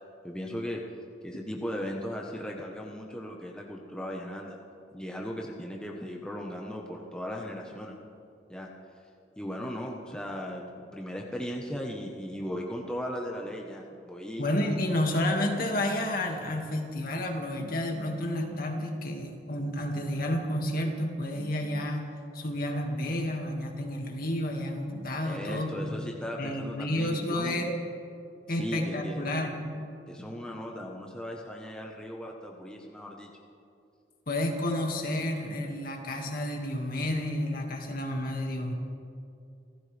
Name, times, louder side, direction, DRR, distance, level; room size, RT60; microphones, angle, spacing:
voice 1, 0.2-0.8 1.2-4.6 4.9-7.9 8.5-8.7 9.4-10.6 10.9-14.5 25.2-27.6 28.6-29.3 30.1-33.3, equal, 5° left, -1 dB, 1.2 m, -37 dB
voice 2, 14.4-22.0 22.3-26.1 26.4-27.7 28.5-29.7 34.3-38.7, left 1 dB, 55° left, 2 dB, 2.1 m, -30 dB
27.5 x 14.0 x 3.5 m, 2.5 s
head